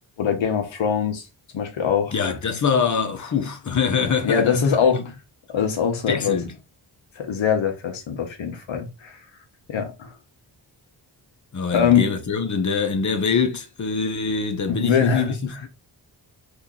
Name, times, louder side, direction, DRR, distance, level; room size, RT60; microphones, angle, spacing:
voice 1, 0.2-1.3 1.5-2.1 4.2-5.0 5.5-6.4 7.2-9.2 9.7-10.1 11.7-12.1 14.7-15.3, left 7 dB, 85° left, 1.1 m, -22 dB
voice 2, 2.1-4.4 4.9-5.0 6.1-6.5 11.5-15.7, left 5 dB, 40° left, 0.8 m, -24 dB
2.9 x 2.7 x 3.7 m
wide cardioid pair, 120°, 45 cm